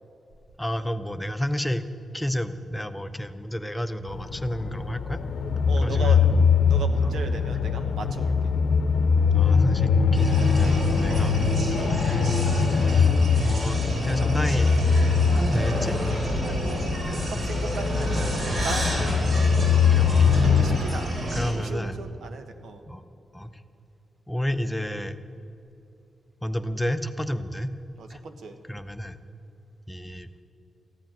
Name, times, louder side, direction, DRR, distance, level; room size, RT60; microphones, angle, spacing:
voice 1, 0.6-1.8 2.1-5.2 5.8-6.4 7.0-7.1 9.3-11.4 11.8-12.2 12.8-14.7 15.3-16.0 16.5-16.6 18.9-20.4 21.3-22.0 22.9-23.0 23.3-23.6 24.3-25.2 26.4-27.7 28.1-28.2 28.7-29.2 29.9-30.3, equal, 10° left, 10 dB, 0.6 m, -31 dB
sound 1, 4.1-20.8, left 5 dB, 85° left, 0.7 m, -22 dB
voice 2, 5.7-6.2 6.7-8.3 11.1-11.5 11.8-12.0 16.4-19.8 20.4-21.1 21.5-22.8 28.0-28.5, right 4 dB, 80° right, 7 dB, 1.2 m, -37 dB
sound 2, 10.1-21.5, right 1 dB, 50° right, 3.5 m, -30 dB
14.5 x 9.1 x 9.1 m, 2.7 s
cardioid pair, 95°, 0 cm